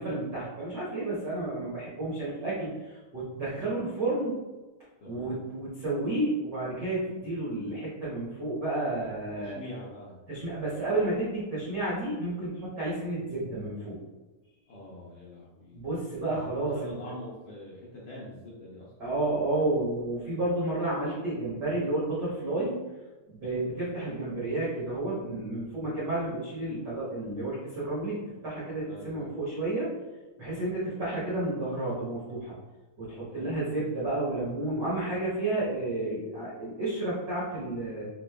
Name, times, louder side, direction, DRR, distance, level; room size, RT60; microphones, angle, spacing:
voice 1, 0.0-4.4 5.0-9.6 10.3-14.0 15.7-16.9 19.0-22.7 23.3-28.2 28.4-29.9 30.4-32.5 33.0-38.1, right 2 dB, 80° right, -9 dB, 0.9 m, -31 dB
voice 2, 5.0-5.4 9.4-10.1 14.7-15.8 16.5-19.1 28.8-29.3 33.3-33.6 35.4-35.7, left 1 dB, 75° left, -7 dB, 1.4 m, -44 dB
5.3 x 3.0 x 2.2 m, 1.2 s
omnidirectional pair, 3.6 m